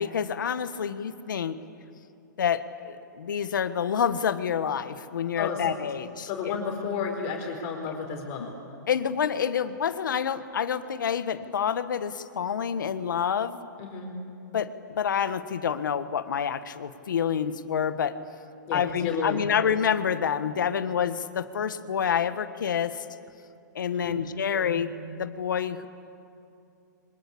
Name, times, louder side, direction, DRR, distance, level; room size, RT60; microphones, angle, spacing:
voice 1, 0.0-1.6 2.4-6.5 8.9-13.7 14.5-18.2 18.7-23.0 23.7-24.9 25.2-25.9, left 8 dB, 85° left, 11 dB, 1.4 m, -28 dB
voice 2, 5.4-5.7 6.2-8.5 13.8-14.1 18.7-19.5 23.9-24.1 24.5-24.9, left 5 dB, 40° left, 1 dB, 4.5 m, -32 dB
27.5 x 25.0 x 8.6 m, 2.6 s
hypercardioid pair, 140°, 10 cm